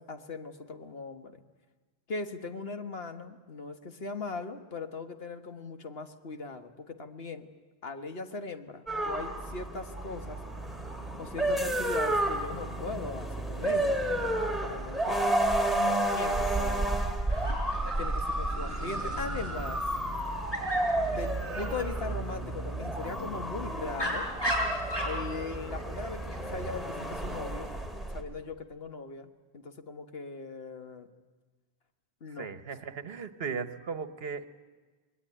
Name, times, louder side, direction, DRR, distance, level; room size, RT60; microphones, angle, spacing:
voice 1, 0.0-1.4 2.1-7.5 7.8-10.4 11.2-14.3 14.6-15.3 16.1-17.1 18.0-19.8 21.1-24.3 25.0-27.7 28.1-31.1 32.2-32.5, left 4 dB, 65° left, 7 dB, 1.6 m, -39 dB
sound 1, 8.9-28.2, right 1 dB, ahead, 2.8 m, -31 dB
Dog, 17.3-27.9, equal, 20° left, 6.4 m, -38 dB
voice 2, 32.4-34.5, right 5 dB, 70° right, 11 dB, 1.3 m, -37 dB
26.5 x 21.0 x 9.9 m, 1.4 s
omnidirectional pair, 1.1 m